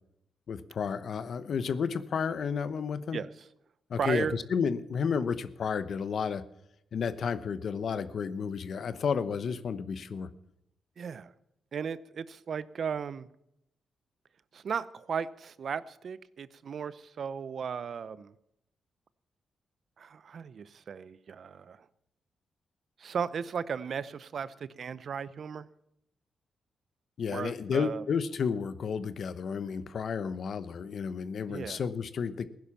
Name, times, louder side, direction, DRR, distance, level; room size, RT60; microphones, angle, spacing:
voice 1, 0.5-3.2 3.9-6.4 6.9-10.3 27.2-32.5, left 6 dB, 65° left, 14 dB, 0.9 m, -32 dB
voice 2, 3.9-4.4 11.0-11.3 11.7-13.3 14.5-18.3 20.0-21.9 23.0-25.7 27.3-28.0 31.5-31.8, right 6 dB, 60° right, 17 dB, 0.7 m, -36 dB
16.0 x 10.5 x 7.2 m, 0.80 s
cardioid pair, 85°, 0 cm